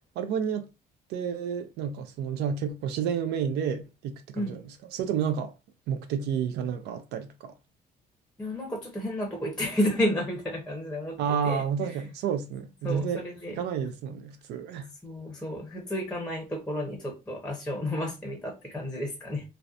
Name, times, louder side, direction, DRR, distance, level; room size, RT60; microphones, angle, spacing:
voice 1, 0.2-0.7 1.1-5.5 5.9-7.5 11.2-13.2 13.6-14.9, right 7 dB, 80° right, 0.4 m, -30 dB
voice 2, 8.4-11.2 11.4-11.6 12.8-13.6 15.0-19.4, left 1 dB, 5° left, 0.6 m, -31 dB
2.6 x 2.1 x 2.3 m
cardioid pair, 110°, 17 cm